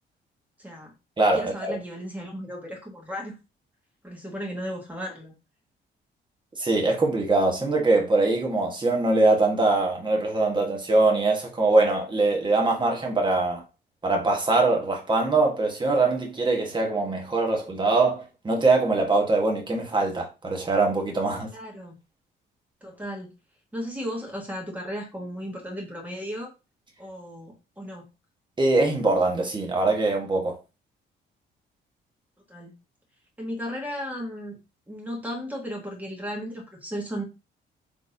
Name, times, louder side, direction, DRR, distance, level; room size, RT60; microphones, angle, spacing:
voice 1, 0.6-0.9 1.3-3.3 4.0-5.3 21.5-22.0 22.8-23.3 23.7-26.5 27.0-28.1 32.5-32.8 33.4-34.6 34.9-37.2, equal, 10° right, 1.8 m, -35 dB
voice 2, 1.2-1.8 6.6-13.6 14.0-21.5 28.6-30.6, right 2 dB, 25° right, 1.3 m, -22 dB
4.0 x 3.3 x 2.7 m
cardioid pair, 90°, 20 cm